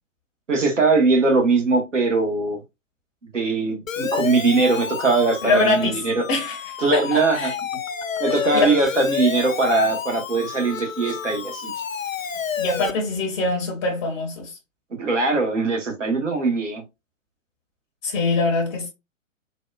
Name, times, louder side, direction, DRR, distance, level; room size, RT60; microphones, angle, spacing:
voice 1, 0.5-2.6 3.3-6.2 6.8-7.5 8.2-11.7 15.0-16.8, right 3 dB, 70° right, 1.3 m, -21 dB
Siren, 3.9-12.9, left 7 dB, 85° left, 0.5 m, -30 dB
voice 2, 5.4-6.0 6.3-7.5 8.6-8.7 12.6-14.6 18.0-18.9, left 3 dB, 20° left, 0.6 m, -23 dB
4.1 x 2.1 x 2.3 m
figure-of-eight pair, 120°, 39 cm